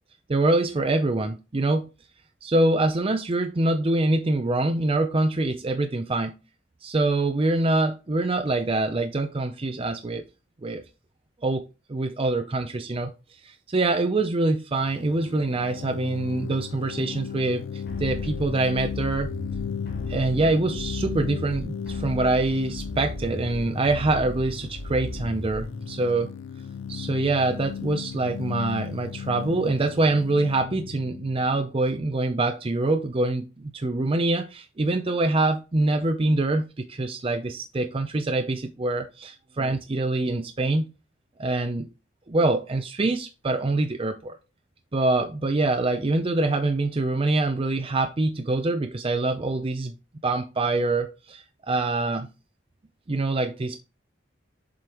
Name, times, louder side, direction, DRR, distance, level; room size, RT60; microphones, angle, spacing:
voice 1, 0.3-1.9 2.4-6.4 6.8-10.3 10.6-10.8 11.4-13.1 13.4-19.3 20.1-26.3 26.9-40.9 41.4-41.9 42.3-44.3 44.9-49.9 50.2-52.3 53.1-53.8, right 2 dB, 30° right, 0.5 m, -25 dB
sound 1, 14.8-32.4, left 7 dB, 80° left, 0.3 m, -36 dB
sound 2, 17.9-25.9, left 1 dB, 60° left, 2.0 m, -36 dB
7.5 x 5.0 x 3.0 m
head